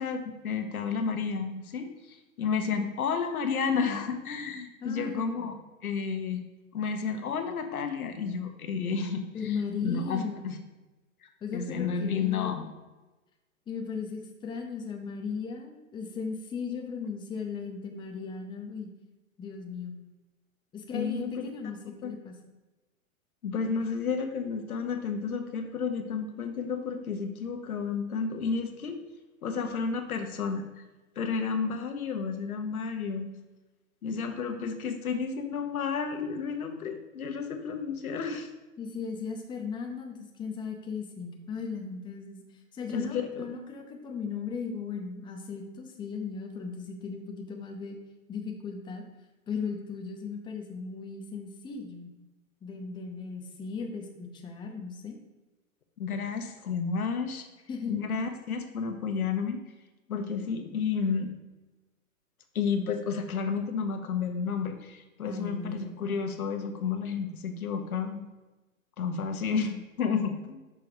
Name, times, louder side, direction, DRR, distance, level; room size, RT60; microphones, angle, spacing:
voice 1, 0.0-5.6 5.8-6.4 6.7-9.5 9.8-10.6 11.2-12.6 20.9-21.5 22.0-22.2 23.4-29.0 29.4-30.6 31.2-33.3 34.0-38.5 42.9-43.5 56.0-57.4 57.9-59.6 60.1-61.3 62.5-68.2 69.0-70.6, left 5 dB, 80° left, 6 dB, 1.1 m, -31 dB
voice 2, 4.8-5.5 9.3-10.4 11.4-12.7 13.7-18.9 19.4-20.0 20.7-22.4 34.1-34.2 38.8-48.0 48.3-49.0 49.5-52.1 52.6-55.2 57.7-58.0 65.2-66.0, left 5 dB, 10° left, 2 dB, 0.7 m, -37 dB
6.1 x 4.6 x 4.9 m, 1.1 s
hypercardioid pair, 125°, 43 cm